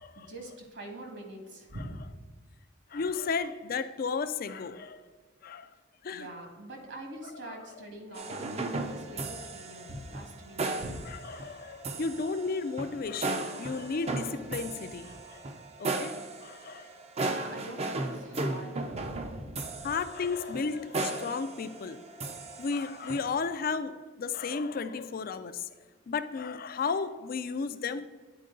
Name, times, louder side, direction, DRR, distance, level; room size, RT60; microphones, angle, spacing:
voice 1, 0.1-2.0 5.7-5.8 6.1-11.1 17.2-19.5 19.8-19.9, right 1 dB, 60° right, 3 dB, 1.6 m, -44 dB
voice 2, 2.9-5.0 5.4-5.7 6.0-6.3 7.5-7.6 11.4-15.4 15.8-16.1 16.4-16.9 19.8-22.0 22.6-25.7 26.1-28.1, left 4 dB, 45° left, 12 dB, 0.4 m, -33 dB
sound 1, 8.1-23.3, right 2 dB, 30° right, 0.5 m, -36 dB
9.5 x 4.6 x 3.8 m, 1.5 s
head